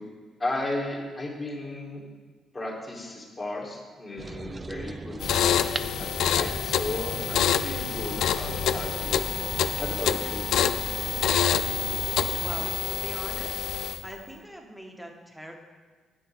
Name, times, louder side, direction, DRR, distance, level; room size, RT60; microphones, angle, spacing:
voice 1, 0.4-2.0 2.5-9.2 9.8-10.4, left 2 dB, 30° left, -3 dB, 2.4 m, -35 dB
sound 1, 4.2-12.7, right 3 dB, 25° right, 0.4 m, -39 dB
sound 2, 5.2-14.1, left 9 dB, 75° left, 0.3 m, -27 dB
Bowed string instrument, 7.9-12.9, right 4 dB, 85° right, 1.3 m, -48 dB
voice 2, 12.4-13.7 14.0-15.5, equal, ahead, 1 dB, 1.4 m, -42 dB
9.6 x 8.4 x 3.7 m, 1.5 s
cardioid pair, 90°, 0 cm